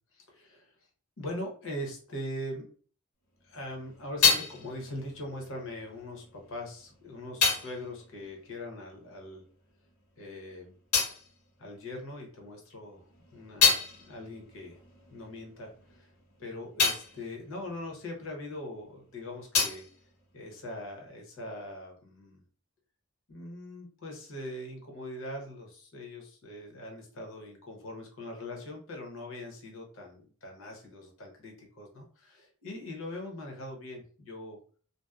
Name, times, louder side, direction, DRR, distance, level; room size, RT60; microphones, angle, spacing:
voice 1, 0.1-0.7 1.2-2.7 3.4-9.4 10.2-10.7 11.6-14.8 15.1-16.1 16.4-19.9 20.3-22.4 23.3-34.6, left 1 dB, 60° left, 0 dB, 0.8 m, -41 dB
sound 1, 3.4-9.4 9.7-12.4 12.8-18.8 19.0-21.1, left 5 dB, 85° left, 1.3 m, -32 dB
2.6 x 2.0 x 2.3 m, 0.44 s
head